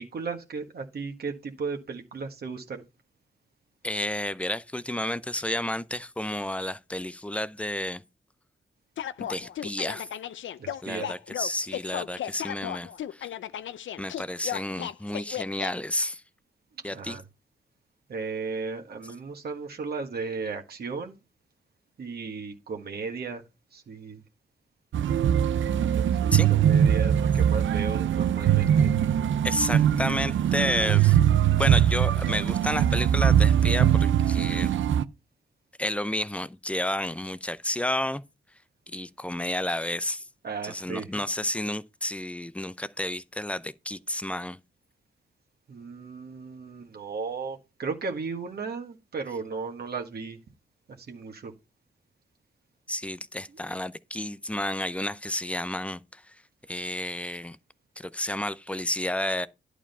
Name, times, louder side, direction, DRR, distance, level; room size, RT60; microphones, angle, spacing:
voice 1, 0.0-2.8 10.6-11.1 16.9-17.2 18.1-21.2 22.0-23.4 23.7-24.2 25.9-28.9 40.4-41.1 45.7-50.4 50.9-51.5, right 4 dB, 55° right, 1.6 m, -35 dB
voice 2, 3.8-8.0 9.2-10.1 10.8-13.3 14.0-16.2 16.8-17.2 26.3-26.5 29.4-31.2 31.6-34.7 35.8-38.2 38.9-40.2 40.6-44.6 52.9-56.2 56.7-57.6 58.0-59.5, left 1 dB, 5° left, 0.5 m, -31 dB
sound 1, 9.0-15.7, left 10 dB, 80° left, 0.6 m, -35 dB
sound 2, 24.9-35.0, right 9 dB, 80° right, 0.6 m, -22 dB
11.0 x 5.0 x 5.4 m
wide cardioid pair, 140°, 19 cm